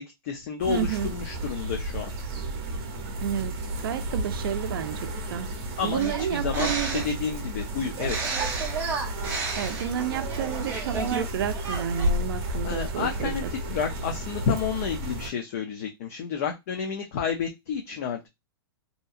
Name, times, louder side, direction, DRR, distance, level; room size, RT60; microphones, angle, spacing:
voice 1, 0.0-2.1 5.8-8.2 12.6-18.3, left 6 dB, 40° left, 0.4 m, -30 dB
sound 1, 0.6-15.3, right 1 dB, 35° right, 0.8 m, -32 dB
voice 2, 0.7-1.1 3.2-5.5 5.8-7.1 9.6-13.8, right 9 dB, 60° right, 0.4 m, -31 dB
sound 2, 6.0-7.2 7.9-11.3 11.5-12.1, right 4 dB, 15° right, 0.6 m, -32 dB
2.8 x 2.6 x 2.3 m
supercardioid pair, 170°, 13 cm